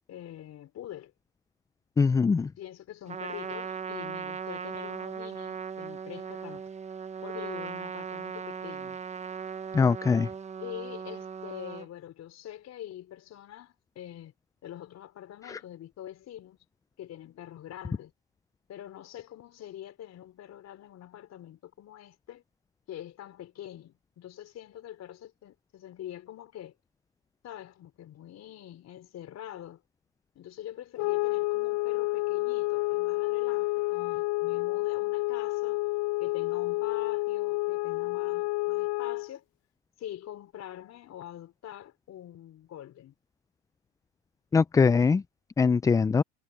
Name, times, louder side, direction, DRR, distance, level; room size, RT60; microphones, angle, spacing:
voice 1, 0.1-1.1 2.6-6.6 7.2-9.0 10.6-14.3 14.6-16.6 17.0-18.1 18.7-22.4 22.9-26.7 27.4-29.8 30.3-35.8 36.2-39.4 40.0-43.1, left 12 dB, 50° left, 4.3 m, -44 dB
voice 2, 2.0-2.5 9.7-10.3 44.5-45.2 45.6-46.2, left 5 dB, 10° left, 0.3 m, -22 dB
Trumpet, 3.1-11.9, right 6 dB, 20° right, 0.8 m, -38 dB
sound 1, 31.0-39.3, left 23 dB, 65° left, 0.8 m, -29 dB
supercardioid pair, 90°, 34 cm